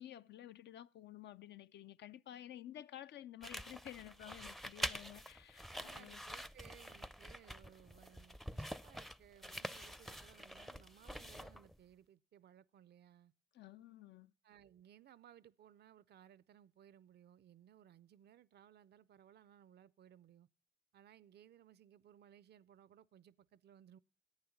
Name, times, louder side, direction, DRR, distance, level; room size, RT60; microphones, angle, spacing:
voice 1, 0.0-6.2 13.5-14.3, left 12 dB, 75° left, 0.5 m, -52 dB
sound 1, 3.4-11.8, equal, ahead, 0.5 m, -47 dB
voice 2, 5.7-13.3 14.4-20.5 20.9-24.0, right 10 dB, 65° right, 0.5 m, -62 dB
10.5 x 8.7 x 7.1 m
supercardioid pair, 50°, 18 cm